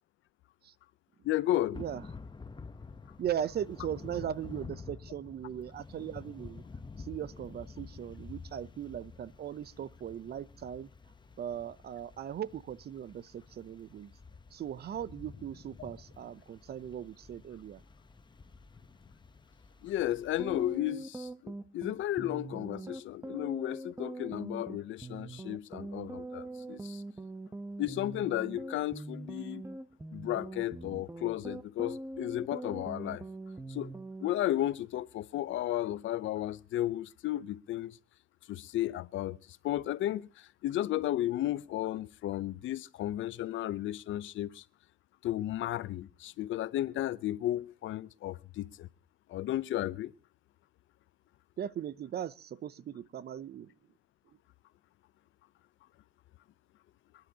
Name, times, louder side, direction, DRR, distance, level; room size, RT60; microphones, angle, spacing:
voice 1, 1.2-1.8 19.8-27.0 27.8-29.6 30.1-33.2 33.7-33.9 34.2-38.0 38.5-39.4 39.6-44.6 45.2-48.9 49.3-50.1, left 13 dB, 75° left, 0.6 m, -33 dB
Thunder / Rain, 1.7-20.8, left 4 dB, 25° left, 0.8 m, -50 dB
voice 2, 3.2-6.6 7.0-10.9 11.4-14.1 14.5-17.8 51.6-53.7, right 10 dB, 55° right, 0.6 m, -38 dB
sound 1, 20.3-34.3, right 2 dB, 15° right, 0.8 m, -43 dB
27.0 x 10.5 x 2.8 m
cardioid pair, 90°, 20 cm